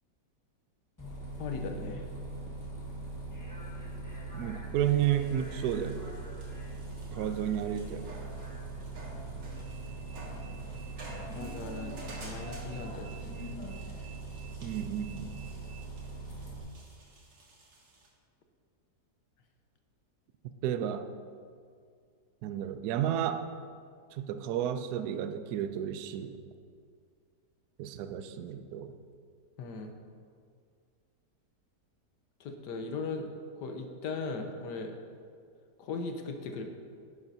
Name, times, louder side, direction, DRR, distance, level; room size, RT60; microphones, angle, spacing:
Bus, 1.0-16.6, right 2 dB, 10° left, 1.1 m, -41 dB
voice 1, 1.4-2.1 11.3-13.6 29.6-29.9 32.4-33.3 33.6-35.0 35.8-36.6, left 4 dB, 75° left, 4 dB, 1.4 m, -38 dB
voice 2, 4.3-6.0 7.1-8.0 14.6-15.4 20.6-21.1 22.4-23.4 24.2-26.3 27.8-28.9, right 10 dB, 70° right, 9 dB, 1.0 m, -32 dB
sound 1, 4.8-18.1, right 1 dB, 90° right, 2.2 m, -52 dB
10.5 x 9.8 x 2.7 m, 2.1 s
omnidirectional pair, 1.9 m